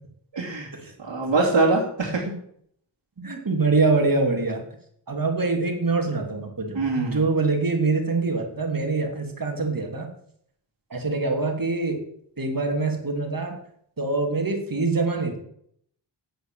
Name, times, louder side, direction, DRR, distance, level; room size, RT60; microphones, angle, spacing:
voice 1, 0.3-0.7 1.0-2.2 6.7-7.2, right 3 dB, 65° right, -5 dB, 3.0 m, -23 dB
voice 2, 3.2-4.6 5.1-10.1 10.9-12.0 12.4-13.6 14.0-15.4, right 3 dB, 45° right, 3 dB, 2.8 m, -24 dB
8.9 x 8.3 x 7.4 m, 0.68 s
wide cardioid pair, 70°, 45 cm